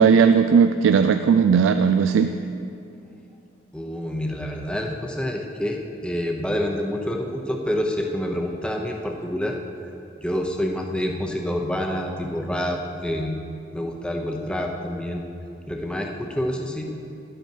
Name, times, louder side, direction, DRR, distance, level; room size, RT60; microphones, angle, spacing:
voice 1, 0.0-2.3, right 6 dB, 85° right, 8 dB, 0.3 m, -17 dB
voice 2, 3.7-9.6 10.2-13.3 13.7-15.2 15.7-16.9, equal, 5° left, 1 dB, 0.7 m, -27 dB
11.5 x 8.2 x 4.5 m, 2.7 s
head